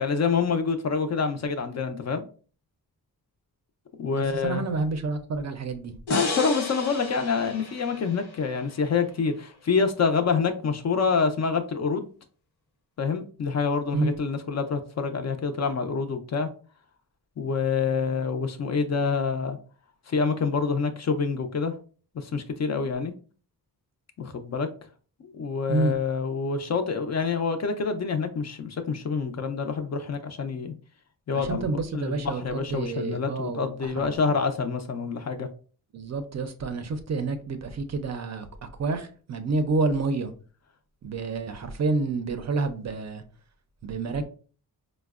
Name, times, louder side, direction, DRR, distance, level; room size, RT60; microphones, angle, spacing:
voice 1, 0.0-2.2 4.0-4.7 6.1-12.1 13.0-16.5 17.4-19.6 20.1-21.7 22.1-23.1 24.2-24.7 25.2-30.7 31.3-35.5, left 5 dB, 45° left, 0.4 m, -27 dB
voice 2, 4.1-5.9 13.9-14.1 25.7-25.9 31.3-34.1 35.9-38.5 38.8-40.3 41.0-43.2 43.8-44.2, right 3 dB, 45° right, 0.4 m, -29 dB
sound 1, 6.1-9.3, left 3 dB, 85° left, 1.0 m, -34 dB
4.5 x 2.0 x 2.3 m
wide cardioid pair, 135°, 38 cm